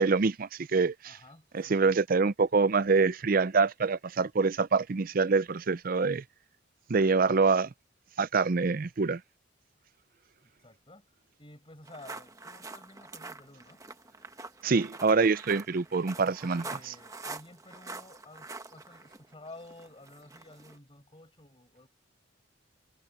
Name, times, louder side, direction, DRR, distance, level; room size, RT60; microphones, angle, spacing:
voice 1, 0.0-1.2 1.5-6.2 6.9-7.7 8.2-9.2 14.6-16.9, right 4 dB, 45° right, 0.5 m, -25 dB
voice 2, 1.0-2.0 10.4-11.1 11.4-13.8 16.6-21.9, left 2 dB, 25° left, 5.1 m, -52 dB
sound 1, 11.8-20.8, right 3 dB, 15° right, 1.1 m, -45 dB
head